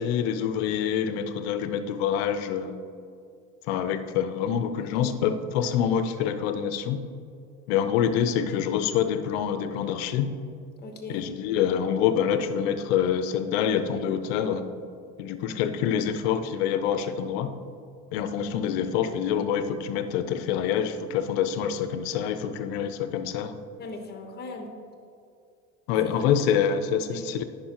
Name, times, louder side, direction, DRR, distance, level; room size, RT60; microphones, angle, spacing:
voice 1, 0.0-2.7 3.7-7.0 7.7-10.3 11.1-14.6 15.2-17.5 18.1-23.6 25.9-27.4, left 8 dB, 80° left, 10 dB, 0.6 m, -26 dB
voice 2, 4.8-5.1 10.8-11.2 23.8-24.7 26.0-26.2 26.7-27.2, left 3 dB, 30° left, 4 dB, 1.2 m, -39 dB
9.9 x 5.5 x 2.9 m, 2.4 s
supercardioid pair, 110°, 31 cm